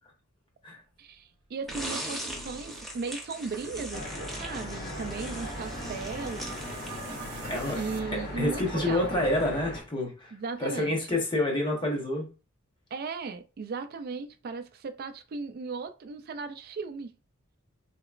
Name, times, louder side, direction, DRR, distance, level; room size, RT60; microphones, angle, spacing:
voice 1, 1.0-6.9 7.2-7.4 7.7-9.3 10.3-11.1 12.9-17.1, right 4 dB, 45° right, 0.3 m, -37 dB
sound 1, 1.7-7.6, right 1 dB, ahead, 0.8 m, -40 dB
sound 2, 1.7-10.0, right 4 dB, 85° right, 0.7 m, -46 dB
sound 3, 3.9-9.8, left 1 dB, 50° left, 1.1 m, -38 dB
voice 2, 7.5-7.8 8.1-10.3 10.6-12.3, left 1 dB, 25° left, 1.0 m, -28 dB
4.0 x 2.9 x 2.4 m
head